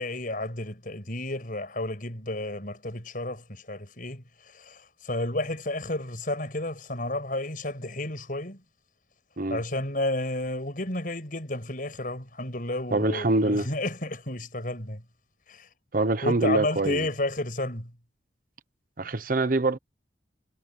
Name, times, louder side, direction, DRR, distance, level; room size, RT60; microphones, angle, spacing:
voice 1, 0.0-8.6 9.5-15.0 15.5-15.7 16.2-17.9, left 2 dB, 50° left, 6.4 m, -31 dB
voice 2, 12.9-13.7 15.9-17.0 19.0-19.8, right 2 dB, 50° right, 0.9 m, -24 dB
head